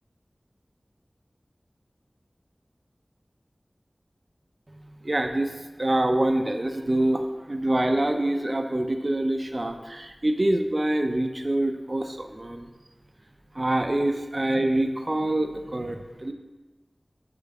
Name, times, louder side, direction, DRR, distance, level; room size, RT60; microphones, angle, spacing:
voice 1, 5.0-5.5 5.8-12.7 13.5-16.3, right 1 dB, 45° right, 6 dB, 0.5 m, -25 dB
10.5 x 4.5 x 3.6 m, 1.2 s
wide cardioid pair, 60°, 0 cm